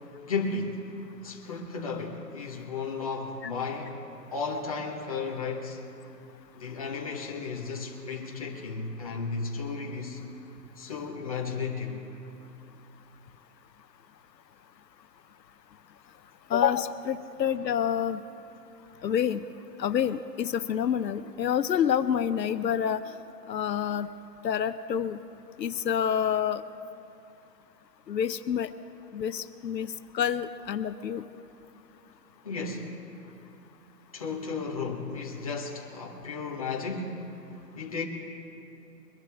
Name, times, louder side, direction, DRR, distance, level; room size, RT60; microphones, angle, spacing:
voice 1, 0.3-0.9 1.2-4.0 4.3-5.8 6.5-10.2 10.8-12.0 32.4-32.9 34.1-37.3 37.7-38.1, left 4 dB, 20° left, -2 dB, 1.1 m, -34 dB
voice 2, 16.5-18.2 19.0-19.5 19.8-23.0 23.5-24.1 24.4-25.2 25.6-26.6 28.1-28.7 29.1-31.3, left 8 dB, 80° left, 11 dB, 0.8 m, -28 dB
23.0 x 12.0 x 3.5 m, 2.8 s
hypercardioid pair, 175°, 50 cm